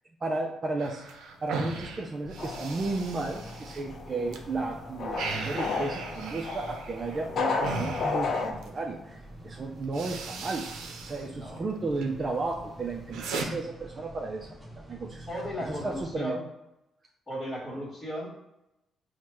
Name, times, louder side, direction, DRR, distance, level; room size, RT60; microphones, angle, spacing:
voice 1, 0.2-1.1 1.4-10.7 11.0-15.3 15.6-16.4, right 3 dB, 40° right, 0 dB, 0.5 m, -34 dB
sound 1, 0.8-4.4 4.7-8.8 9.4-9.5 9.8-11.3 11.6-12.1 12.5-13.5, right 4 dB, 85° right, 0.6 m, -38 dB
sound 2, 2.2-16.1, right 1 dB, 10° right, 0.8 m, -47 dB
sound 3, 2.4-8.5, left 4 dB, 60° left, 0.5 m, -33 dB
voice 2, 11.3-11.7 15.3-16.4 17.3-18.3, equal, 20° left, -6 dB, 1.4 m, -35 dB
4.2 x 2.2 x 4.6 m, 0.90 s
cardioid pair, 90°, 0 cm